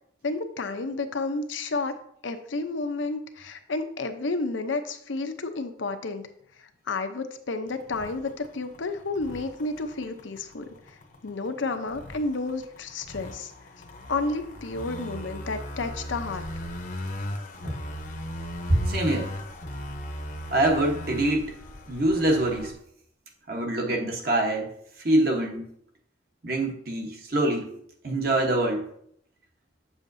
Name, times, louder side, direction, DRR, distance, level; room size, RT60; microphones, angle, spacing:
voice 1, 0.2-1.9 2.2-6.3 6.6-10.6 11.2-13.5 14.1-16.4, left 3 dB, 80° left, 7 dB, 0.7 m, -31 dB
sound 1, 7.7-22.7, left 1 dB, 40° left, 0.8 m, -38 dB
voice 2, 18.7-19.3 20.5-21.5 21.9-22.7 23.5-24.7 25.0-25.6 26.4-27.7 28.0-28.9, right 1 dB, 50° right, 1 dB, 1.2 m, -24 dB
8.2 x 7.1 x 2.7 m, 0.69 s
head